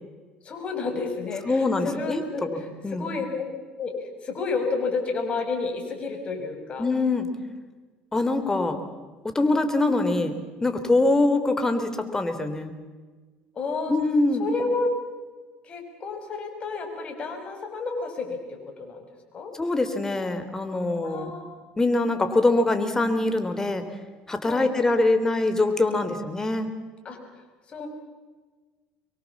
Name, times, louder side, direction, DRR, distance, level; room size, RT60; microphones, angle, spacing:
voice 1, 0.4-3.5 3.8-6.9 13.5-13.9 14.4-14.9 15.6-19.1 19.3-19.5 20.8-21.5 24.4-24.7 27.0-27.2 27.7-27.9, left 4 dB, 40° left, 4 dB, 6.3 m, -31 dB
voice 2, 1.5-3.1 6.8-7.3 8.1-8.8 9.2-12.7 13.9-14.5 19.6-21.3 21.8-23.8 24.3-26.7, left 2 dB, 15° left, 8 dB, 3.4 m, -24 dB
23.5 x 23.5 x 7.3 m, 1.4 s
supercardioid pair, 85°, 3 cm